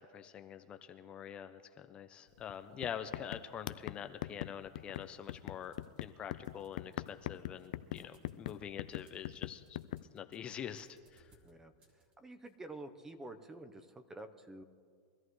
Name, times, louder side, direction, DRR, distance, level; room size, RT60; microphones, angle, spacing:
voice 1, 0.0-9.8 10.1-11.3, left 8 dB, 30° left, 8 dB, 0.6 m, -45 dB
sound 1, 2.4-2.5 2.8-10.0, left 14 dB, 70° left, 0.4 m, -42 dB
sound 2, 4.9-6.2 6.4-12.5, right 2 dB, 30° right, 2.4 m, -69 dB
voice 2, 7.9-8.3 11.4-11.7 12.2-14.6, right 2 dB, 10° right, 9 dB, 0.9 m, -49 dB
23.5 x 13.5 x 3.2 m, 2.2 s
supercardioid pair, 125°, 4 cm